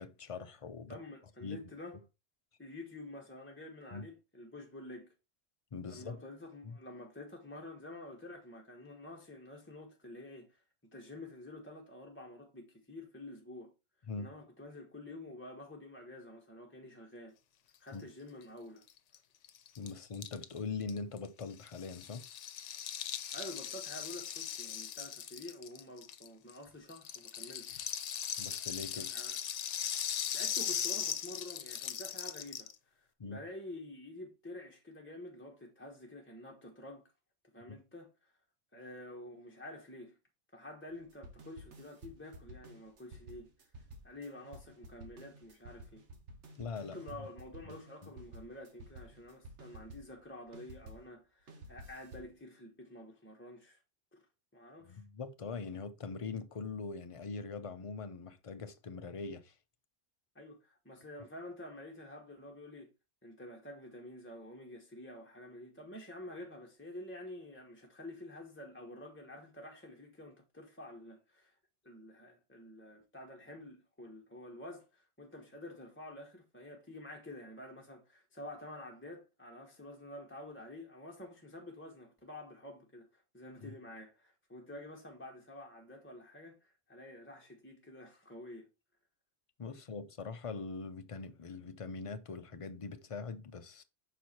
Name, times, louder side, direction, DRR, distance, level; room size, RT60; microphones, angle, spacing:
voice 1, 0.0-1.0 1.4-1.7 3.9-4.0 5.7-6.2 6.6-6.8 14.1-14.3 17.9-18.0 19.8-22.3 28.4-29.1 33.2-33.4 46.6-47.3 47.7-47.8 48.0-48.1 54.8-59.5 83.6-83.7 89.6-93.8, left 4 dB, 40° left, 0.5 m, -42 dB
voice 2, 0.9-2.0 2.6-5.1 5.8-10.6 10.9-13.7 14.2-17.4 17.8-18.8 23.0-27.8 28.9-29.4 30.3-37.0 37.5-38.3 38.7-40.2 40.5-43.5 44.0-46.0 46.8-53.8 54.1-54.2 54.5-55.0 60.3-62.9 63.2-71.6 71.8-88.7, left 1 dB, 10° left, 1.0 m, -49 dB
Rattle (instrument), 18.9-19.0 19.1-19.2 19.4-26.6 26.9-32.7, left 9 dB, 90° left, 1.0 m, -39 dB
sound 1, 40.9-51.1 51.5-52.3, right 1 dB, 80° right, 1.5 m, -52 dB
5.8 x 4.7 x 4.2 m
omnidirectional pair, 1.2 m